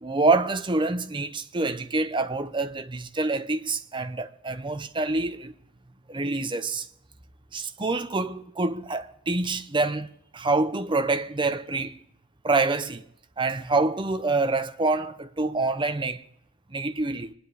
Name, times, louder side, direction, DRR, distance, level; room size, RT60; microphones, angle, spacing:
voice 1, 0.0-5.5 6.1-6.9 7.5-12.0 12.4-13.0 13.4-16.2 16.7-17.3, right 3 dB, 25° right, 0.8 m, -26 dB
25.5 x 10.0 x 4.8 m
head